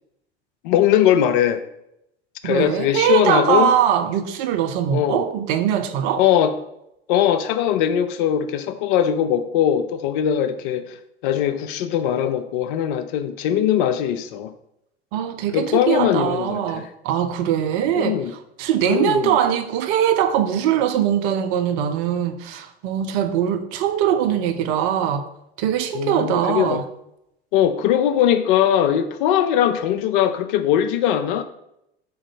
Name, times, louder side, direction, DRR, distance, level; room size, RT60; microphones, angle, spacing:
voice 1, 0.6-1.6 2.4-3.7 4.9-5.3 6.2-6.5 7.1-11.0 11.2-14.5 15.5-16.9 18.0-18.3 18.8-19.4 25.9-26.8 27.5-31.4, left 10 dB, 55° left, 0.4 m, -20 dB
voice 2, 2.4-6.2 15.1-18.2 18.6-25.3 25.6-26.8, right 9 dB, 55° right, 0.5 m, -21 dB
3.8 x 2.6 x 4.0 m
figure-of-eight pair, 70°, 31 cm